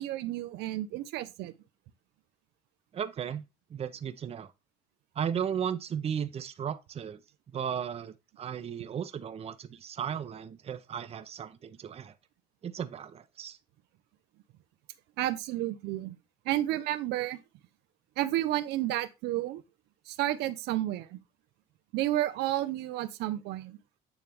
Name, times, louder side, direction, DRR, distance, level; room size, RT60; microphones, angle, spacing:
voice 1, 0.0-1.5 15.2-16.2 16.5-17.4 18.2-19.6 20.1-21.2 21.9-23.8, right 14 dB, 85° right, 0.6 m, -31 dB
voice 2, 2.9-3.4 3.7-4.5 5.2-7.2 7.5-12.1 12.6-13.6, right 8 dB, 35° right, 0.6 m, -35 dB
9.0 x 3.3 x 3.4 m
cardioid pair, 110°, 17 cm